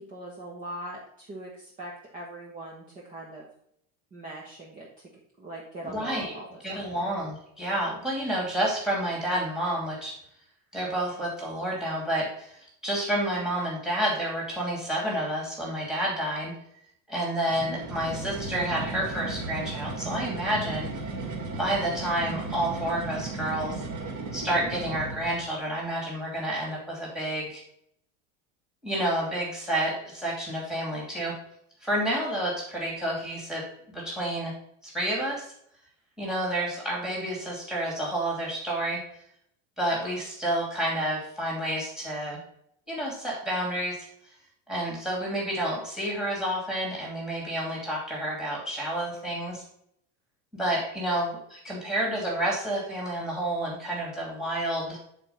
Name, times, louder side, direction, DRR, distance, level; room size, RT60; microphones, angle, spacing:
voice 1, 0.1-3.5 4.1-5.1 5.4-7.1, right 1 dB, 20° right, -4 dB, 1.4 m, -41 dB
voice 2, 5.8-6.4 6.6-10.1 10.7-16.5 17.1-20.9 21.6-23.8 24.3-27.6 28.8-31.3 31.8-34.5 34.8-35.5 36.2-39.0 39.8-42.4 42.9-44.1 44.7-49.6 50.5-55.0, right 1 dB, ahead, -2 dB, 2.6 m, -29 dB
sound 1, 17.5-25.5, right 3 dB, 35° right, 2.3 m, -35 dB
9.0 x 4.5 x 5.6 m, 0.70 s
cardioid pair, 180°, 39 cm